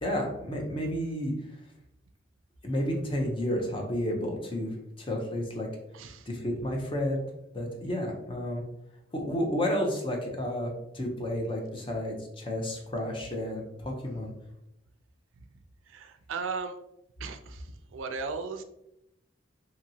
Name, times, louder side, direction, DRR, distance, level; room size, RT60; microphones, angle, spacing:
voice 1, 0.0-1.3 2.6-5.7 6.3-7.2 7.5-8.6 9.1-14.3, left 1 dB, 25° left, 1 dB, 0.6 m, -31 dB
voice 2, 5.9-6.3 15.9-16.8 17.2-18.6, right 4 dB, 85° right, 7 dB, 0.4 m, -36 dB
2.9 x 2.7 x 2.6 m, 0.84 s
head